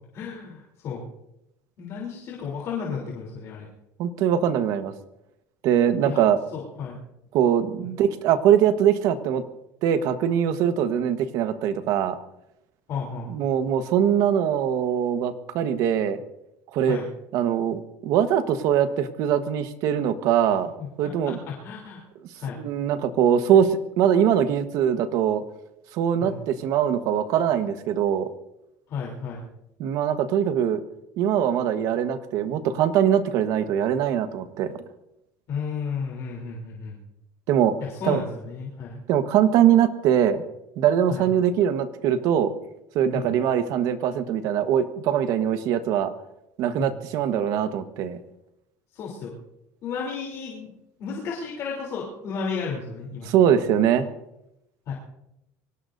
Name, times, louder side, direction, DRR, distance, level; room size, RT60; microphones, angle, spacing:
voice 1, 0.1-1.1 1.8-3.7 6.0-6.2 6.5-7.0 7.8-7.9 12.9-13.3 16.9-17.1 20.8-22.0 22.3-22.6 26.2-26.4 28.9-29.5 35.5-37.0 37.8-39.0 41.1-41.2 43.1-43.4 46.8-47.0 48.9-49.3 49.8-50.7 51.0-53.3 54.9-55.0, left 5 dB, 45° left, -3 dB, 3.5 m, -33 dB
voice 2, 4.0-4.9 5.6-6.4 7.3-9.4 9.8-12.2 13.3-16.2 16.7-17.0 17.3-20.7 21.0-21.4 22.6-25.4 25.9-28.3 29.8-30.8 31.2-34.7 37.5-37.7 38.0-38.2 39.1-40.4 40.8-42.5 42.9-46.1 46.6-48.2 53.2-54.1, right 9 dB, 55° right, 9 dB, 1.3 m, -22 dB
24.5 x 18.0 x 2.7 m, 0.86 s
cardioid pair, 145°, 7 cm